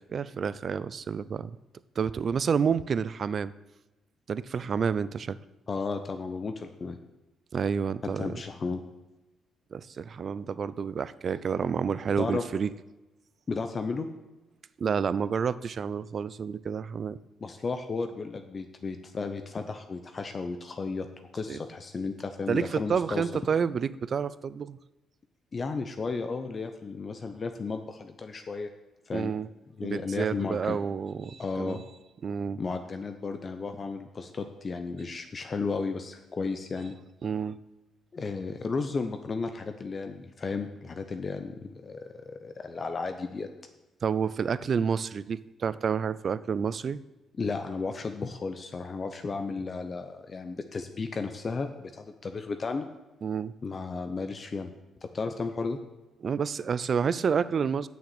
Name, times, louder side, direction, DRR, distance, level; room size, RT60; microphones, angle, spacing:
voice 1, 0.0-1.6 2.0-3.5 4.3-5.4 7.5-8.4 9.7-12.7 14.8-17.2 21.5-21.6 22.5-24.8 29.1-29.5 29.8-31.8 32.2-32.6 37.2-37.6 44.0-47.0 53.2-53.5 56.2-57.9, right 6 dB, 50° right, 16 dB, 0.4 m, -29 dB
voice 2, 5.7-7.0 8.0-8.8 12.2-12.4 13.5-14.1 17.4-21.1 21.3-23.3 25.5-28.7 29.1-29.3 29.8-30.8 31.4-31.8 32.6-36.9 38.1-43.5 47.4-52.9 53.6-54.7 55.0-55.8, left 4 dB, 40° left, 7 dB, 0.7 m, -34 dB
7.0 x 6.3 x 7.8 m, 1.0 s
cardioid pair, 90°, 0 cm